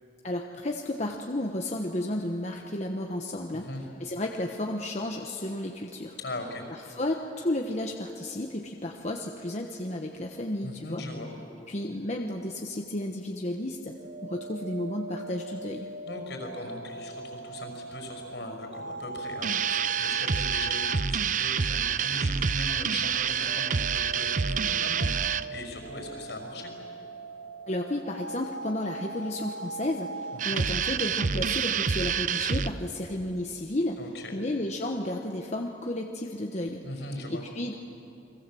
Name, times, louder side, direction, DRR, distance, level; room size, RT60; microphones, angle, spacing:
voice 1, 0.2-3.7 4.0-6.2 6.7-11.0 11.7-13.9 14.2-15.9 27.7-34.0 34.3-36.8 37.3-37.7, left 1 dB, 40° left, 2 dB, 1.1 m, -32 dB
voice 2, 3.5-3.8 6.2-6.7 10.6-11.3 16.1-26.7 30.3-30.7 34.0-34.5 36.8-37.4, left 2 dB, 75° left, 3 dB, 5.8 m, -39 dB
sound 1, 13.7-21.1 23.1-30.4, right 3 dB, 80° right, 1.4 m, -40 dB
sound 2, 19.4-25.4 30.4-32.7, right 6 dB, 45° right, 0.6 m, -27 dB
29.5 x 22.5 x 7.7 m, 2.9 s
head